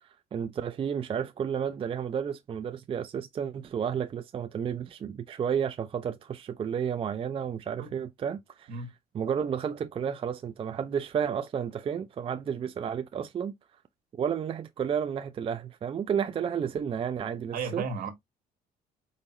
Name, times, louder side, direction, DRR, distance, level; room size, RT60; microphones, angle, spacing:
voice 1, 0.0-8.9 9.1-13.5 14.2-17.8, right 8 dB, 30° right, 0.4 m, -32 dB
voice 2, 17.5-18.1, right 5 dB, 60° right, 1.4 m, -33 dB
4.7 x 2.6 x 3.0 m
cardioid pair, 110°, 17 cm